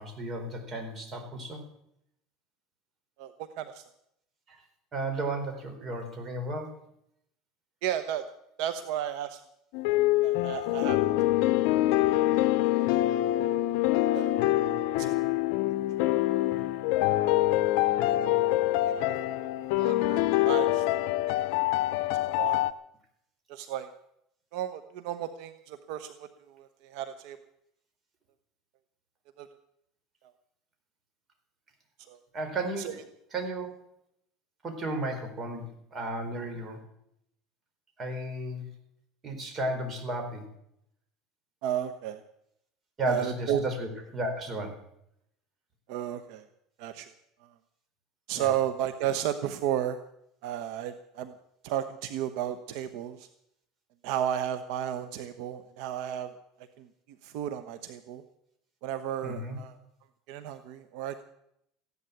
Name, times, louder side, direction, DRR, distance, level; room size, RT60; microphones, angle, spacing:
voice 1, 0.0-1.6 4.5-4.6 4.9-6.8 32.3-33.0 33.3-33.7 34.6-36.8 38.0-38.7 39.2-40.4 43.0-44.8 48.3-48.5 59.2-59.6, right 1 dB, 25° right, 4 dB, 4.3 m, -34 dB
voice 2, 3.2-3.8 7.8-8.2 8.6-9.4 9.9-11.1 12.8-12.9 14.1-14.3 15.0-15.2 19.8-20.9 22.2-22.7 23.5-23.9 24.5-27.4 29.4-29.5 32.1-32.2 32.8-32.9 41.6-42.2 43.1-43.7 45.9-46.4 46.8-47.1 48.3-50.0 50.4-51.3 51.6-53.3 54.0-56.3 56.8-56.9 57.2-58.2 58.8-59.7 60.3-61.2, right 10 dB, 70° right, 10 dB, 1.0 m, -33 dB
sound 1, 9.7-22.7, left 15 dB, 70° left, 0.7 m, -25 dB
15.5 x 11.0 x 8.3 m, 0.76 s
supercardioid pair, 135°, 0 cm